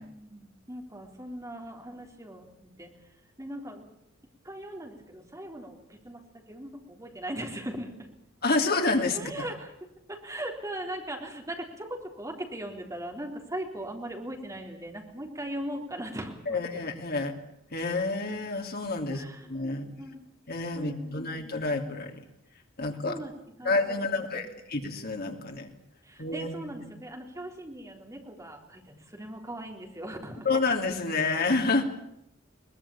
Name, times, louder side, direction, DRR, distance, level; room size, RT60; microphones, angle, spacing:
voice 1, 0.0-2.9 3.4-3.9 4.4-8.1 9.1-9.7 10.1-16.6 19.1-19.6 20.0-20.3 20.7-21.4 23.1-24.2 26.0-30.5, right 1 dB, 15° right, 2 dB, 3.9 m, -39 dB
voice 2, 8.4-9.5 16.5-17.4 17.7-19.9 20.5-22.2 22.8-23.2 23.6-25.7 26.2-26.7 30.4-31.8, left 3 dB, 50° left, 4 dB, 2.9 m, -29 dB
22.0 x 20.0 x 8.7 m, 0.81 s
head